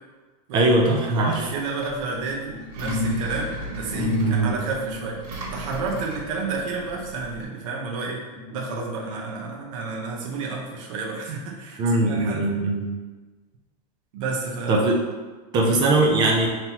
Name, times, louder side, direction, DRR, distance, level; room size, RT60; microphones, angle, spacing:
voice 1, 0.5-1.5 4.2-4.6 11.8-12.9 14.7-15.0 15.5-16.5, right 2 dB, 20° right, 0 dB, 0.5 m, -20 dB
voice 2, 1.1-5.2 5.5-8.2 8.5-12.4 14.1-14.8, right 4 dB, 55° right, -2 dB, 0.8 m, -31 dB
Engine, 1.3-7.4, right 2 dB, 85° right, 1.4 m, -38 dB
sound 1, 2.1-7.8 8.3-9.5 9.9-10.1, left 2 dB, 15° left, 1.5 m, -32 dB
5.4 x 2.9 x 2.9 m, 1.3 s
supercardioid pair, 165°, 21 cm